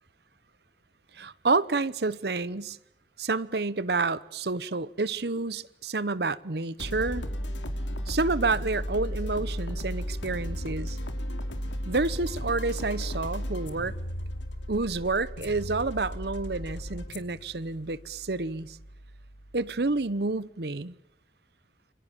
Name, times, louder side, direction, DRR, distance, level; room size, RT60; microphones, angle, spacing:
voice 1, 1.1-2.8 3.2-7.2 8.1-11.0 11.8-14.0 14.7-18.8 19.5-20.9, right 3 dB, 60° right, 17 dB, 0.9 m, -29 dB
sound 1, 6.8-20.2, equal, 85° left, 2.7 m, -35 dB
28.0 x 25.5 x 7.3 m, 0.79 s
head